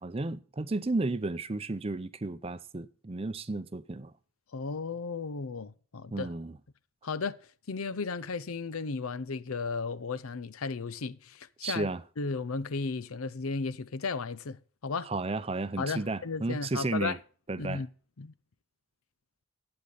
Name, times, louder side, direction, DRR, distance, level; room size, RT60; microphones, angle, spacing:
voice 1, 0.0-4.1 6.1-6.6 11.6-12.0 15.0-17.2 17.5-17.8, right 2 dB, 25° right, 0.5 m, -33 dB
voice 2, 4.5-6.3 7.0-7.4 7.7-11.9 12.2-14.6 14.8-15.1 15.8-17.2 17.6-17.9 18.2-18.3, left 4 dB, 85° left, 0.7 m, -34 dB
11.5 x 8.9 x 4.0 m
head